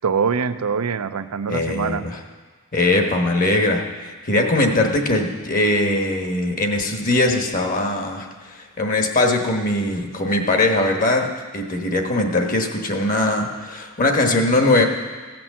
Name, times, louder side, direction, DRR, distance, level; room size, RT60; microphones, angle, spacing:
voice 1, 0.0-2.0, right 6 dB, 85° right, 12 dB, 0.6 m, -23 dB
voice 2, 1.5-2.2 2.7-14.8, left 2 dB, 40° left, 3 dB, 1.2 m, -21 dB
15.5 x 6.0 x 7.4 m, 1.4 s
head